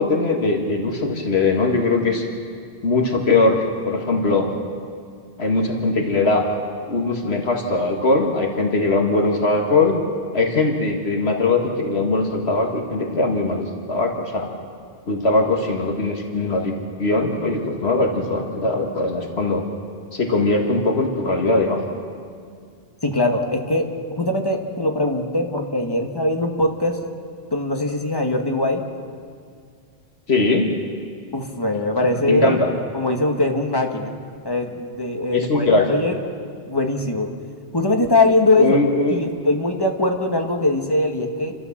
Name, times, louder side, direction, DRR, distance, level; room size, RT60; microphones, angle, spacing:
voice 1, 0.0-2.3 2.8-4.5 5.4-6.4 6.9-10.0 10.3-14.5 15.1-16.7 17.0-19.6 20.1-21.8 30.3-30.7 32.3-32.7 35.3-35.9 38.5-39.2, left 3 dB, 80° left, 2 dB, 2.1 m, -20 dB
voice 2, 23.0-27.0 27.5-28.8 31.3-32.6 32.9-34.1 34.5-36.2 36.6-37.3 37.7-38.8 39.1-41.5, left 2 dB, 20° left, 3 dB, 1.7 m, -21 dB
29.0 x 13.0 x 7.4 m, 2.2 s
omnidirectional pair, 1.1 m